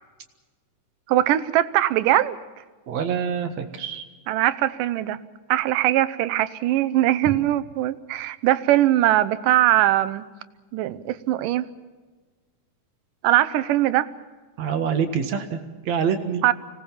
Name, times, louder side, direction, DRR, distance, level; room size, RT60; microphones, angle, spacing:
voice 1, 1.1-2.4 4.3-5.2 5.5-10.2 10.7-11.7 13.2-14.1 16.4-16.5, right 14 dB, 90° right, 15 dB, 2.5 m, -21 dB
voice 2, 2.9-4.1 14.6-16.4, right 7 dB, 60° right, 7 dB, 2.7 m, -26 dB
25.0 x 18.5 x 7.3 m, 1.4 s
omnidirectional pair, 3.7 m